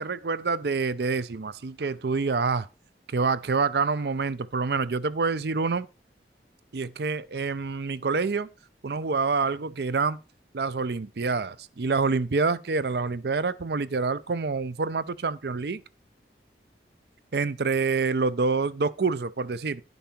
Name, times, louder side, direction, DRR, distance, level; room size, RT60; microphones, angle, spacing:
voice 1, 0.0-2.7 3.1-5.9 6.7-8.5 8.8-10.2 10.5-15.8 17.3-19.8, right 4 dB, 65° right, 0.5 m, -27 dB
11.5 x 5.4 x 4.3 m
head